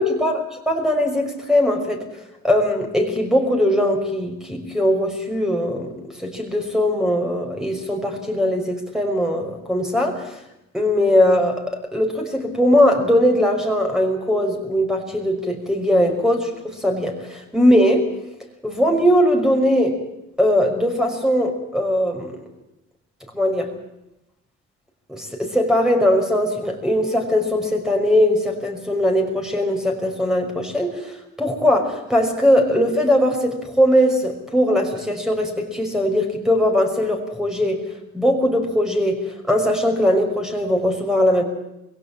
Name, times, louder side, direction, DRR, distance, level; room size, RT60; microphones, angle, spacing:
voice 1, 0.0-0.4 0.7-2.0 2.4-10.4 10.7-18.1 18.6-20.0 20.4-22.4 23.3-23.7 25.1-37.8 38.1-39.2 39.5-41.4, equal, ahead, 2 dB, 5.6 m, -20 dB
21.0 x 17.0 x 8.8 m, 0.88 s
cardioid pair, 90°, 30 cm